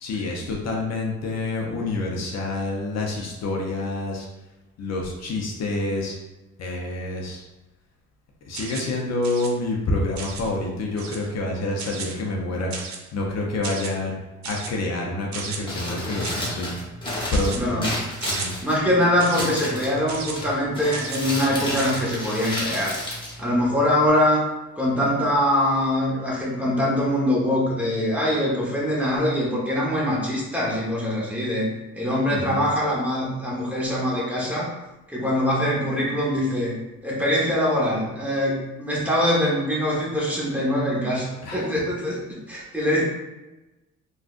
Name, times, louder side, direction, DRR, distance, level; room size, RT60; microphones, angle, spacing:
voice 1, 0.0-4.3 4.8-6.1 6.6-7.4 8.4-12.7 13.1-14.2 14.4-16.8 17.3-17.8 18.3-18.5 32.3-32.6 41.4-41.8, left 2 dB, 60° left, -1 dB, 0.6 m, -27 dB
sound 1, 8.5-9.0 9.2-9.5 10.2-10.5 11.0-11.3 11.8-12.2 12.7-13.1 13.6-13.9 14.4-14.7 15.3-15.6 16.2-16.5 17.3-17.6 18.2-18.5 19.2-19.5 20.1-20.3 20.9-21.2 21.8-22.0, right 5 dB, 65° right, 0.6 m, -34 dB
Crumpling crinkling, 15.5-24.1, left 1 dB, 15° left, 1.1 m, -32 dB
voice 2, 17.5-17.9 18.6-22.9 23.4-24.4 24.8-34.7 35.1-36.7 37.0-43.0, left 1 dB, 5° right, -6 dB, 1.1 m, -23 dB
3.6 x 2.3 x 2.5 m, 1.1 s
cardioid pair, 90°, 30 cm